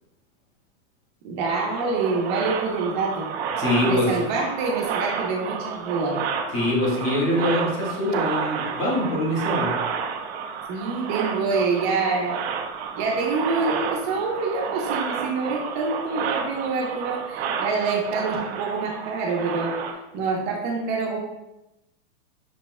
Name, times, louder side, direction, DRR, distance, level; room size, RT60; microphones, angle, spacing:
voice 1, 1.2-3.3 3.8-6.1 10.7-12.4 12.9-19.7 20.1-21.2, right 4 dB, 45° right, -1 dB, 1.1 m, -26 dB
sound 1, 1.5-19.9, right 6 dB, 65° right, 0.7 m, -30 dB
voice 2, 3.6-4.2 6.5-9.7, left 1 dB, 35° left, -4 dB, 1.5 m, -24 dB
6.0 x 3.9 x 2.2 m, 0.95 s
supercardioid pair, 140°, 33 cm